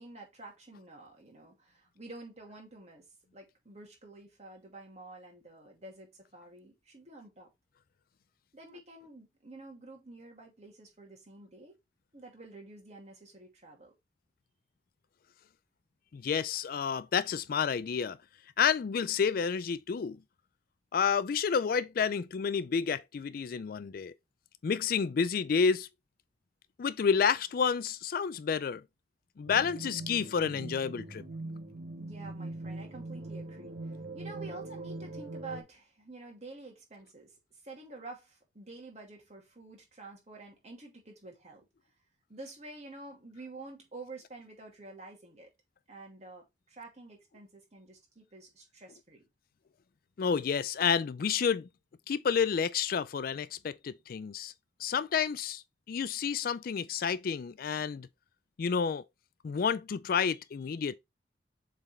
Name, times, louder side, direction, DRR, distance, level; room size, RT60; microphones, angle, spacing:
voice 1, 0.0-3.0 3.3-7.5 8.5-11.8 12.1-13.9 32.0-37.3 37.6-41.7 42.3-45.5 45.9-49.2, right 2 dB, 40° right, 2.4 m, -49 dB
voice 2, 16.1-18.2 18.6-20.2 20.9-24.1 24.6-25.9 26.8-28.8 29.4-31.2 50.2-51.7 52.1-54.5 54.8-55.6 55.9-58.1 58.6-59.0 59.4-61.0, left 6 dB, 55° left, 0.4 m, -30 dB
sound 1, 29.5-35.6, right 2 dB, 60° right, 1.6 m, -42 dB
7.3 x 4.0 x 3.2 m
head